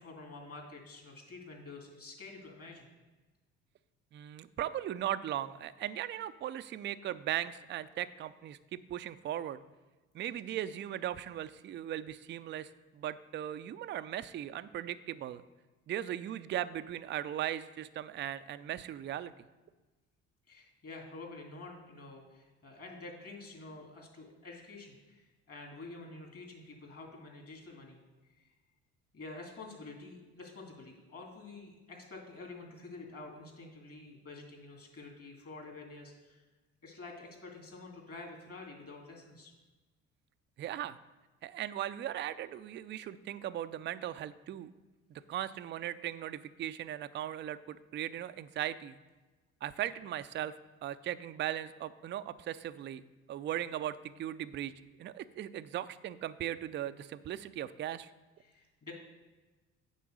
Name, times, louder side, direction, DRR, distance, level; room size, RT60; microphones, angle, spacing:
voice 1, 0.0-2.9 20.5-28.0 28.4-28.5 29.1-36.4 36.8-39.5 58.4-58.9, left 3 dB, 40° left, 1 dB, 2.6 m, -48 dB
voice 2, 4.1-9.6 10.1-15.4 15.9-19.3 40.6-41.0 41.4-44.7 45.1-49.0 49.6-50.6 50.8-53.0 53.3-54.7 55.0-58.1, right 11 dB, 30° right, 13 dB, 0.4 m, -38 dB
9.2 x 3.9 x 6.4 m, 1.2 s
hypercardioid pair, 50°, 36 cm